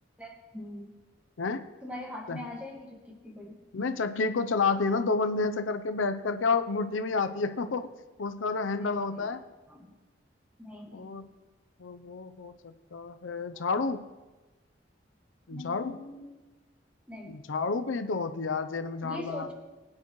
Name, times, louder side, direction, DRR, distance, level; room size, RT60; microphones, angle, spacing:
voice 1, 0.2-1.0 1.8-3.6 8.8-9.3 9.7-9.9 10.6-11.1 13.5-13.7 15.5-16.3 17.1-17.4 19.0-19.5, left 1 dB, 5° right, -1 dB, 1.7 m, -42 dB
voice 2, 3.7-7.9 8.2-9.4 10.9-11.3 11.8-14.0 15.5-16.0 17.2-19.5, left 4 dB, 85° left, 9 dB, 0.6 m, -30 dB
20.5 x 9.6 x 3.1 m, 1.2 s
head